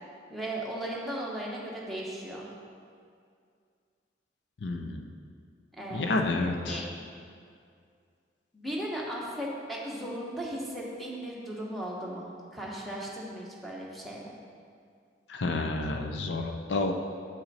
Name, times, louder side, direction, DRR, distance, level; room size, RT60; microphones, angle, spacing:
voice 1, 0.3-2.5 5.8-6.1 6.7-6.8 8.5-14.3, right 1 dB, ahead, -4 dB, 1.0 m, -36 dB
voice 2, 4.6-5.0 5.9-6.9 15.3-16.9, left 2 dB, 75° left, 4 dB, 0.5 m, -30 dB
7.8 x 5.8 x 4.2 m, 2.3 s
head